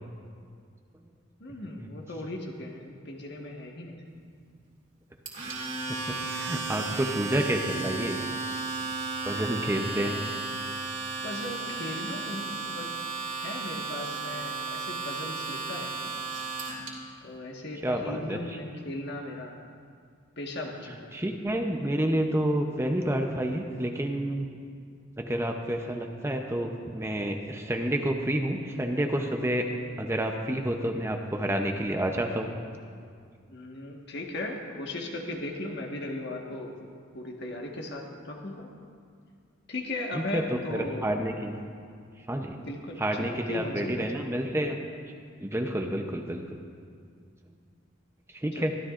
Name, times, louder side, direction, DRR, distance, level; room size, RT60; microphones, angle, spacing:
voice 1, 1.4-4.1 9.7-10.3 11.2-12.9 13.4-16.3 17.2-19.6 20.4-21.1 33.5-36.7 37.1-38.7 39.7-41.1 42.7-44.1 48.5-48.7, left 1 dB, 55° left, 0 dB, 1.5 m, -37 dB
Domestic sounds home sounds, 5.3-16.9, right 4 dB, 40° right, 2.4 m, -34 dB
voice 2, 5.9-8.2 9.2-10.1 17.8-18.6 21.1-24.5 25.2-29.7 30.0-32.5 40.1-41.5 42.2-42.5 43.0-44.9 45.4-46.4 48.3-48.7, right 1 dB, 15° right, 3 dB, 0.7 m, -29 dB
24.5 x 12.5 x 2.5 m, 2.2 s
head